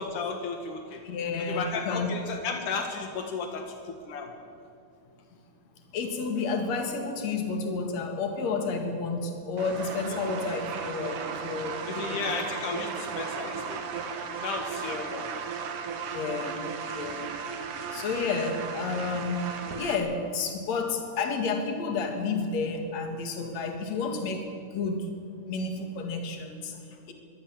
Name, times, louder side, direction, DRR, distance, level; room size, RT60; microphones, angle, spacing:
voice 1, 0.0-1.0 1.4-4.3 10.1-10.2 11.9-13.8 14.2-15.3 17.9-18.3, left 5 dB, 80° left, 4 dB, 3.0 m, -34 dB
voice 2, 1.0-2.1 5.9-12.2 14.8-15.1 16.1-17.4 17.9-19.5 19.7-24.5 24.7-25.2 25.5-27.1, left 4 dB, 60° left, 4 dB, 3.2 m, -31 dB
sound 1, 9.6-20.0, right 6 dB, 75° right, 3.1 m, -35 dB
23.0 x 17.0 x 7.4 m, 2.4 s
omnidirectional pair, 3.6 m